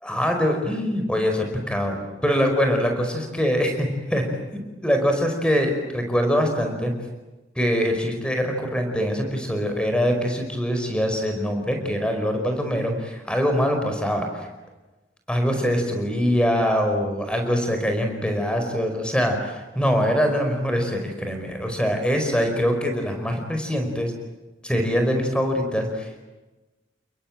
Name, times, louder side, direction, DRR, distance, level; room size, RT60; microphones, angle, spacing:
voice 1, 0.0-4.2 4.5-6.9 7.5-14.5 15.3-24.1 24.6-26.2, equal, 5° left, 4 dB, 5.0 m, -23 dB
29.5 x 22.0 x 8.9 m, 1.1 s
head